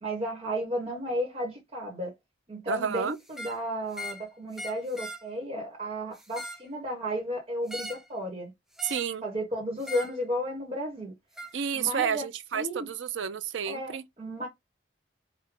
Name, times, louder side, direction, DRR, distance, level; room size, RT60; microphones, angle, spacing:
voice 1, 0.0-2.1 2.5-8.5 9.2-11.1 11.7-12.3 12.5-12.9 13.7-14.5, equal, 35° right, 1.1 m, -33 dB
voice 2, 2.7-3.2 8.8-9.2 11.5-14.0, right 7 dB, 90° right, 0.5 m, -30 dB
sound 1, 3.3-3.6 3.9-4.3 4.5-5.2 6.1-6.7 7.7-8.1 8.8-9.1 9.8-10.2 11.4-11.5, left 1 dB, ahead, 0.5 m, -40 dB
4.8 x 2.2 x 3.7 m
head